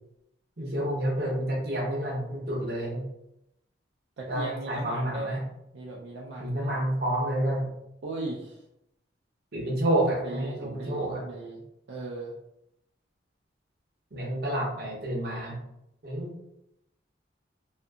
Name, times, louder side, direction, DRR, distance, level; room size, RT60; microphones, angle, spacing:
voice 1, 0.6-3.0 4.3-5.4 6.4-7.7 9.5-11.2 14.1-15.6 16.0-16.3, right 1 dB, 55° right, -2 dB, 0.8 m, -29 dB
voice 2, 4.2-5.4 5.7-6.8 8.0-8.6 10.1-12.3, right 2 dB, 70° right, -4 dB, 0.4 m, -38 dB
2.6 x 2.5 x 2.3 m, 0.82 s
head